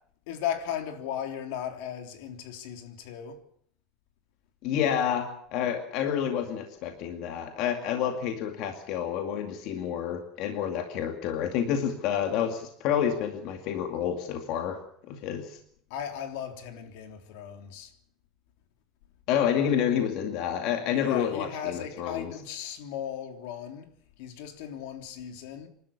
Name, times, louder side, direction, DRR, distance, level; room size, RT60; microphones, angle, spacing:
voice 1, 0.3-3.4 15.9-17.9 20.9-23.9 24.2-25.7, left 9 dB, 75° left, 3.2 m, -36 dB
voice 2, 4.6-14.8 15.1-15.6 19.3-22.3, left 9 dB, 50° left, 2.3 m, -29 dB
27.0 x 12.5 x 8.5 m
cardioid pair, 170°, 0 cm